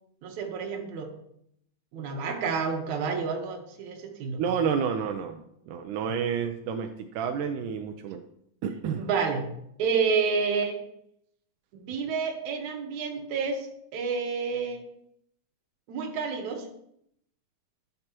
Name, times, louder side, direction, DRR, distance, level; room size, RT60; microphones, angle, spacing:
voice 1, 0.2-1.1 1.9-4.4 9.0-9.5 9.8-10.8 11.7-14.8 15.9-16.7, right 5 dB, 65° right, 3 dB, 2.4 m, -29 dB
voice 2, 4.4-8.2 8.6-9.1, right 7 dB, 80° right, 5 dB, 1.9 m, -30 dB
12.0 x 7.9 x 3.0 m, 0.74 s
omnidirectional pair, 4.2 m